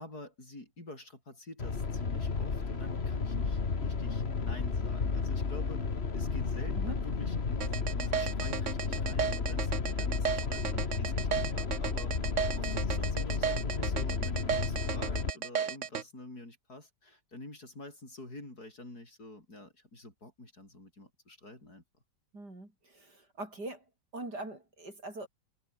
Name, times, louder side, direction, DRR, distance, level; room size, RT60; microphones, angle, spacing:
voice 1, 0.0-5.8 6.1-12.1 12.6-21.8, left 2 dB, 60° left, 8.6 m, -48 dB
sound 1, 1.6-15.3, left 4 dB, 35° left, 2.0 m, -32 dB
sound 2, 7.6-16.0, right 7 dB, 45° right, 1.4 m, -33 dB
voice 2, 22.3-23.8 24.1-25.3, right 2 dB, 65° right, 8.0 m, -42 dB
omnidirectional pair, 1.9 m